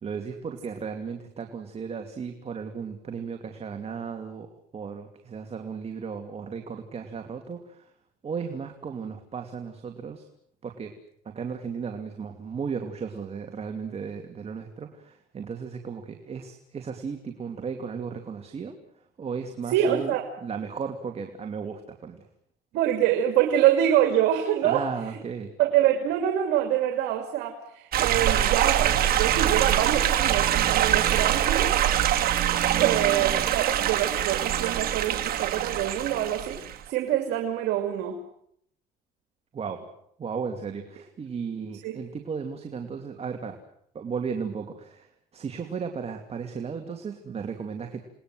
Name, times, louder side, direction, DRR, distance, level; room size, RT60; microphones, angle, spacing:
voice 1, 0.0-7.9 8.2-10.3 10.6-10.9 11.2-20.1 20.4-22.3 24.6-25.5 39.5-39.9 40.2-43.6 43.9-48.0, right 6 dB, 35° right, 5 dB, 2.7 m, -35 dB
voice 2, 19.7-20.3 22.7-24.8 25.6-31.8 32.7-38.2 41.8-41.9, right 11 dB, 85° right, 5 dB, 2.8 m, -25 dB
sound 1, 27.9-36.8, right 11 dB, 60° right, 2.9 m, -24 dB
29.0 x 20.0 x 7.8 m, 0.70 s
cardioid pair, 110°, 17 cm